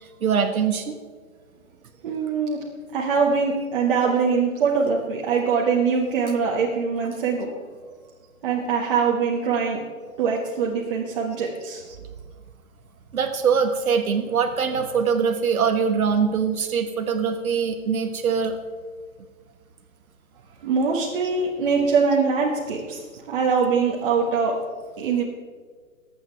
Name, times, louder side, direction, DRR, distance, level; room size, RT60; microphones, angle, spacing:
voice 1, 0.2-0.9 13.1-18.6, right 6 dB, 90° right, 5 dB, 1.4 m, -23 dB
voice 2, 2.0-2.6 2.9-7.5 8.4-9.8 10.2-11.8 20.6-24.6 25.0-25.2, right 5 dB, 40° right, -4 dB, 1.6 m, -23 dB
23.5 x 8.7 x 3.4 m, 1.6 s
hypercardioid pair, 160°, 41 cm